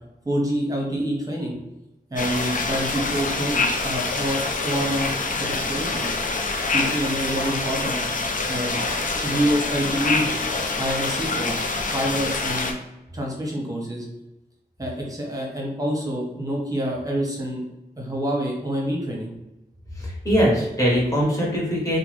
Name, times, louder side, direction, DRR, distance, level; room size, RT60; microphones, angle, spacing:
voice 1, 0.2-1.6 2.1-6.1 6.6-8.0 8.5-8.8 9.2-10.3 10.8-12.8 13.1-14.1 14.8-17.6 18.0-19.3, equal, 20° right, -2 dB, 1.0 m, -27 dB
sound 1, 2.2-12.7, left 3 dB, 55° left, 0.5 m, -26 dB
voice 2, 20.0-22.0, equal, 20° left, -4 dB, 1.3 m, -21 dB
2.9 x 2.2 x 3.2 m, 0.94 s
wide cardioid pair, 55°, 16 cm